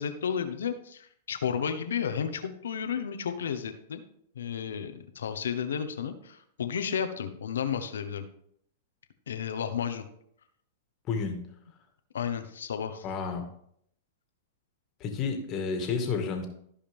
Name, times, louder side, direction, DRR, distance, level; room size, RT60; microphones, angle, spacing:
voice 1, 0.0-4.0 4.3-8.2 9.3-10.0 12.1-13.0, left 7 dB, 85° left, 8 dB, 1.1 m, -32 dB
voice 2, 11.1-11.4 13.0-13.5 15.0-16.5, left 5 dB, 35° left, 4 dB, 1.9 m, -30 dB
14.5 x 5.0 x 3.6 m, 0.69 s
hypercardioid pair, 130°, 0 cm